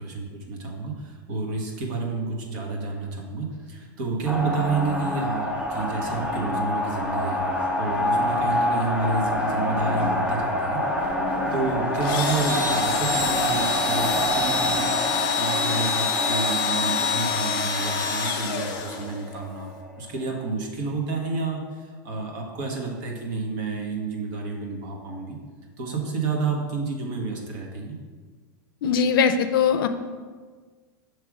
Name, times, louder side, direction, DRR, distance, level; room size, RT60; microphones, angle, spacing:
voice 1, 0.0-15.0 15.3-19.7 20.0-25.4 25.8-28.0, right 3 dB, 60° right, 0 dB, 1.3 m, -30 dB
sound 1, 4.2-20.1, left 1 dB, 10° right, 0.8 m, -27 dB
Engine / Drill, 12.0-19.3, left 4 dB, 40° left, 0.9 m, -26 dB
voice 2, 28.8-29.9, left 6 dB, 80° left, 9 dB, 0.5 m, -20 dB
6.2 x 3.3 x 4.8 m, 1.5 s
supercardioid pair, 135°, 11 cm